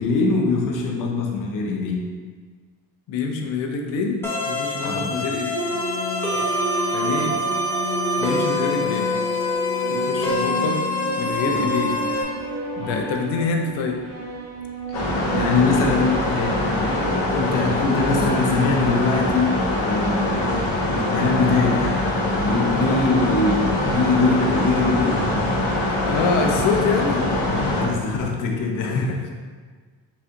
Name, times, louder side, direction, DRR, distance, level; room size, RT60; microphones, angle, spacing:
voice 1, 0.0-2.1 4.8-5.1 11.5-11.7 12.8-13.0 15.0-22.0 22.4-25.3 27.7-29.3, left 3 dB, 45° left, 1 dB, 0.7 m, -23 dB
voice 2, 3.1-5.6 6.9-7.4 8.2-9.1 9.9-12.0 12.8-14.0 15.8-16.1 22.9-23.0 25.7-27.2 28.9-29.3, left 4 dB, 85° left, 3 dB, 0.7 m, -26 dB
sound 1, 4.2-12.2, left 2 dB, 5° left, 0.5 m, -25 dB
sound 2, 5.5-17.1, equal, 55° right, 0.9 m, -30 dB
sound 3, 14.9-27.9, left 1 dB, 65° left, 1.0 m, -23 dB
4.1 x 2.5 x 4.2 m, 1.5 s
cardioid pair, 150°, 45 cm